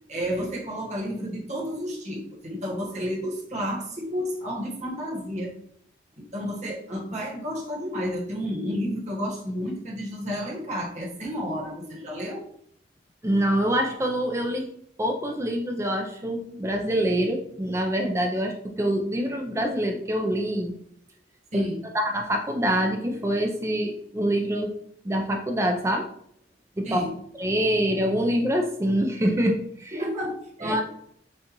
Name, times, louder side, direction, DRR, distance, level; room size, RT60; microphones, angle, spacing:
voice 1, 0.1-5.5 6.2-12.4 21.5-21.8 26.8-27.1 29.9-30.8, equal, 40° right, -3 dB, 1.1 m, -31 dB
voice 2, 13.2-14.7 15.0-20.8 21.5-21.6 21.9-24.7 25.0-26.0 26.8-27.0 27.4-30.0 30.6-30.8, equal, 15° right, 3 dB, 0.4 m, -25 dB
6.5 x 2.4 x 2.9 m, 0.68 s
head